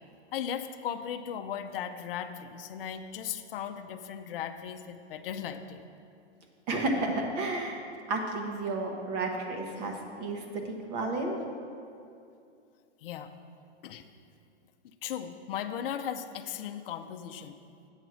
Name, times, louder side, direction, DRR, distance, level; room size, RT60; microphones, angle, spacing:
voice 1, 0.3-5.8 13.0-13.3 13.8-14.0 14.8-17.6, left 9 dB, 55° left, 6 dB, 0.6 m, -37 dB
voice 2, 6.7-11.4, right 2 dB, 35° right, 2 dB, 1.0 m, -32 dB
8.0 x 5.5 x 6.2 m, 2.5 s
hypercardioid pair, 155°, 34 cm